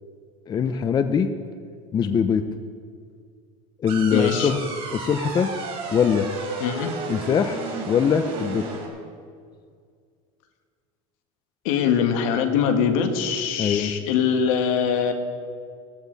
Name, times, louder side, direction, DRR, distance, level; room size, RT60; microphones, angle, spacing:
voice 1, 0.5-1.3 1.9-2.4 3.8-4.6 4.9-5.5 5.9-6.3 7.1-7.6 7.9-8.7 13.6-13.9, left 7 dB, 25° left, 8 dB, 0.6 m, -22 dB
sound 1, 3.9-8.9, right 3 dB, 30° right, 4.1 m, -32 dB
voice 2, 4.1-4.5 6.6-6.9 11.7-15.1, left 7 dB, 70° left, 5 dB, 1.9 m, -22 dB
19.5 x 14.5 x 4.1 m, 2.1 s
supercardioid pair, 140°, 18 cm